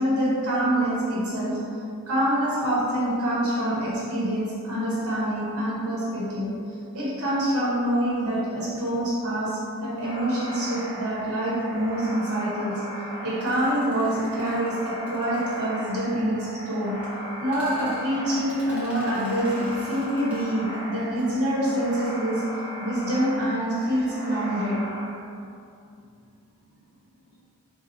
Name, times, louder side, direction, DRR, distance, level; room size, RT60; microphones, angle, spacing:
voice 1, 0.0-1.6 2.1-6.5 6.9-12.8 13.2-17.0 17.4-22.4 22.8-24.8, right 1 dB, 85° right, -7 dB, 1.1 m, -26 dB
sound 1, 10.0-25.0, right 1 dB, 30° left, 1.5 m, -38 dB
sound 2, 13.4-16.1 17.0-17.1 17.5-20.8 21.1-21.2 21.5-21.7, right 1 dB, 5° right, 0.8 m, -46 dB
voice 2, 25.8-27.4, equal, 35° right, -11 dB, 1.4 m, -61 dB
3.9 x 2.3 x 4.5 m, 2.5 s
head